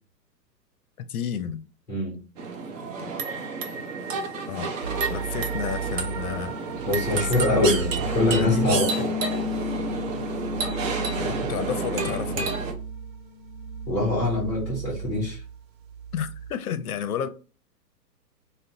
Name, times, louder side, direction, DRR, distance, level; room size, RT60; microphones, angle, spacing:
voice 1, 1.0-1.6 3.0-3.2 4.5-4.7 5.1-6.5 7.1-8.8 11.2-12.5 16.1-17.3, left 8 dB, 60° left, 0.5 m, -31 dB
voice 2, 1.9-2.2 6.8-9.1 13.9-15.4, left 2 dB, 5° left, 0.4 m, -24 dB
sound 1, 2.4-12.7, right 4 dB, 50° right, 0.7 m, -30 dB
sound 2, 4.8-16.5, right 7 dB, 90° right, 0.9 m, -35 dB
sound 3, 8.4-13.0 13.3-14.7, left 6 dB, 15° right, 1.3 m, -34 dB
3.6 x 2.2 x 2.7 m
hypercardioid pair, 125°, 50 cm